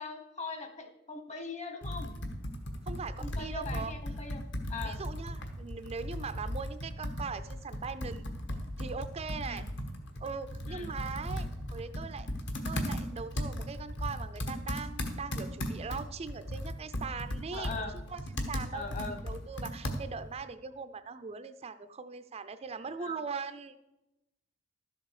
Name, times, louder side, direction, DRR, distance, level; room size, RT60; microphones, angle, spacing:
voice 1, 0.0-2.1 3.2-4.4 4.7-5.0 9.4-9.7 10.7-10.9 17.5-17.9 18.7-19.2 23.0-23.1, left 3 dB, 35° left, 7 dB, 1.3 m, -41 dB
Computer keyboard, 1.8-20.3, equal, 60° left, 1.5 m, -37 dB
voice 2, 2.9-3.9 4.8-8.2 8.8-9.6 10.2-12.3 12.6-17.7 18.1-18.2 18.5-18.8 19.2-23.8, right 5 dB, 30° right, 11 dB, 0.4 m, -40 dB
12.5 x 7.4 x 4.8 m, 0.92 s
head